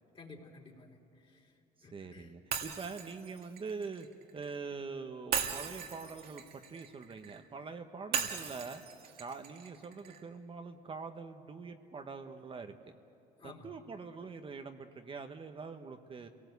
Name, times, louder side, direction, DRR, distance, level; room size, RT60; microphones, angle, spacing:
voice 1, 0.1-2.3 13.4-13.7, left 3 dB, 30° left, 1 dB, 3.3 m, -54 dB
voice 2, 1.8-4.1 4.3-8.8 9.2-13.0 13.4-16.3, right 4 dB, 30° right, 6 dB, 1.1 m, -44 dB
Shatter, 2.5-4.6 5.3-7.4 8.1-10.2, right 7 dB, 70° right, 2.0 m, -38 dB
28.5 x 18.5 x 8.2 m, 2.6 s
cardioid pair, 110°, 17 cm